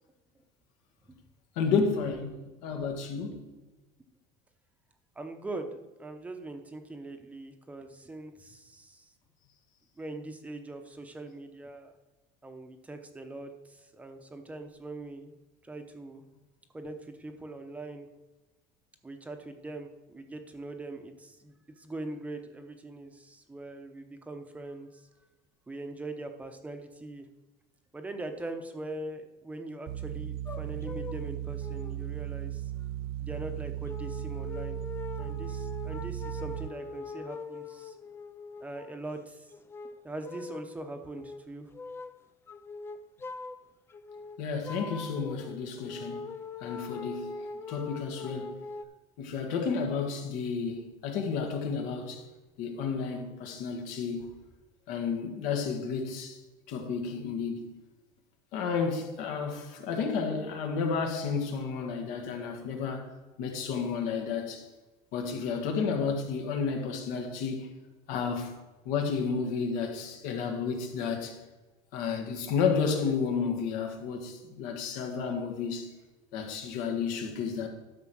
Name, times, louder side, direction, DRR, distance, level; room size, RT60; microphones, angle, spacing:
voice 1, 1.6-3.4 44.4-46.2 46.6-48.5 49.2-52.2 52.6-54.3 54.9-56.4 56.7-57.7 58.5-63.1 63.4-64.6 65.1-67.7 68.1-68.5 68.9-71.4 71.9-75.9 76.3-77.7, left 5 dB, 75° left, 1.7 m, -31 dB
voice 2, 5.2-5.7 6.0-9.1 10.0-11.9 12.4-15.3 15.6-16.2 16.7-18.1 19.0-25.0 25.7-27.3 27.9-32.6 33.2-34.8 35.2-37.9 38.6-39.5 40.0-41.7, right 2 dB, 10° right, 0.8 m, -42 dB
sound 1, 29.9-36.7, right 12 dB, 40° right, 0.5 m, -36 dB
sound 2, 30.5-31.3 31.6-32.0 32.8-32.9 33.9-39.1 39.5-40.8 41.1-41.4 41.7-42.2 42.5-43.6 43.9-48.8, left 4 dB, 15° left, 0.3 m, -42 dB
12.0 x 4.9 x 6.2 m
cardioid pair, 155°, 14 cm